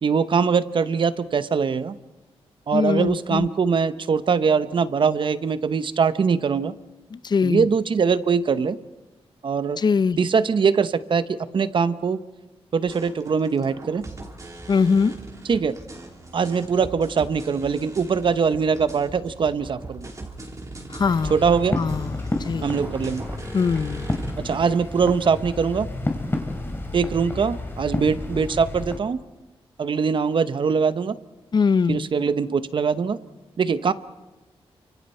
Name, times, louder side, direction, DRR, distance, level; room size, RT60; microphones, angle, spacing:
voice 1, 0.0-1.9 2.7-6.7 7.4-8.8 9.4-9.8 10.2-12.2 12.7-14.0 15.5-15.8 16.3-20.1 21.3-21.8 22.6-23.3 24.4-25.9 26.9-29.2 29.8-31.1 31.9-33.2 33.6-33.9, right 6 dB, 55° right, 13 dB, 0.9 m, -22 dB
voice 2, 2.7-3.5 7.1-7.7 9.8-10.2 14.7-15.1 20.9-21.3 21.7-22.7 23.5-24.2 31.5-32.1, left 5 dB, 45° left, 15 dB, 0.6 m, -22 dB
sound 1, 12.9-24.7, right 2 dB, 30° right, 3.3 m, -40 dB
sound 2, 21.0-29.0, left 2 dB, 20° left, 2.7 m, -31 dB
29.5 x 25.0 x 4.4 m, 1.1 s
wide cardioid pair, 120°, 10 cm